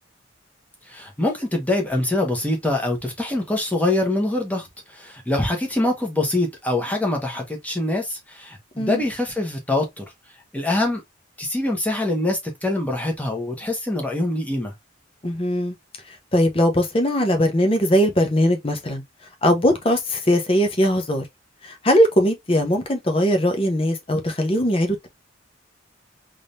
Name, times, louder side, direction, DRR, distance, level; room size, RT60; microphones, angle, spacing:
voice 1, 0.9-4.7 4.9-10.0 10.5-11.0 11.4-14.7, left 2 dB, 10° left, 1.2 m, -24 dB
voice 2, 15.2-15.7 16.1-19.0 19.4-21.2 21.6-25.1, equal, 30° left, 0.9 m, -20 dB
3.7 x 3.3 x 2.6 m
head